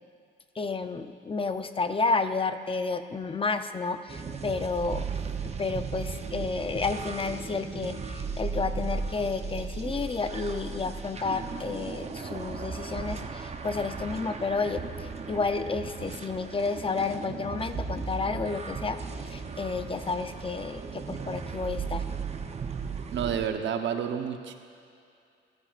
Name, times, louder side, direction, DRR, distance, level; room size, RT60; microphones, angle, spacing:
voice 1, 0.5-5.1 5.4-22.1, left 4 dB, 25° left, 9 dB, 0.6 m, -31 dB
sound 1, 4.1-23.5, right 5 dB, 35° right, 0.8 m, -36 dB
voice 2, 23.1-24.5, right 8 dB, 70° right, 6 dB, 0.9 m, -30 dB
26.0 x 9.8 x 2.5 m, 2.4 s
cardioid pair, 90°, 20 cm